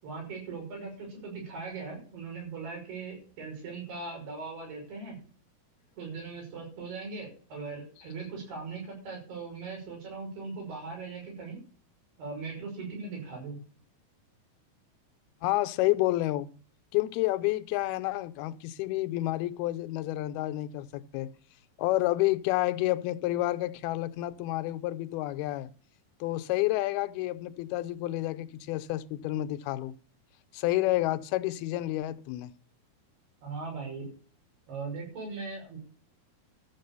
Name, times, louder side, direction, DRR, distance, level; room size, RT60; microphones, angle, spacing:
voice 1, 0.0-5.2 6.0-11.6 12.2-13.6 33.4-34.0 34.7-35.8, right 4 dB, 75° right, 8.1 m, -39 dB
voice 2, 15.4-16.5 16.9-21.3 21.8-25.7 26.2-29.9 30.5-32.5, left 17 dB, 80° left, 2.5 m, -29 dB
13.5 x 7.3 x 6.8 m
omnidirectional pair, 4.6 m